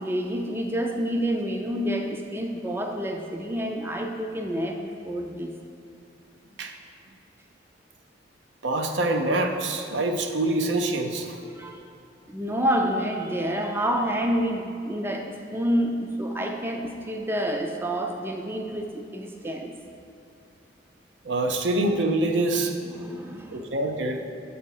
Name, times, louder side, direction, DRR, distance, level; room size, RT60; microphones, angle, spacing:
voice 1, 0.0-5.5 11.4-11.8 12.3-19.7 22.9-23.7, equal, 10° right, 3 dB, 0.4 m, -28 dB
voice 2, 8.6-11.4 21.2-22.7 23.5-24.3, right 2 dB, 75° right, 5 dB, 0.5 m, -25 dB
7.2 x 4.2 x 5.4 m, 2.6 s
head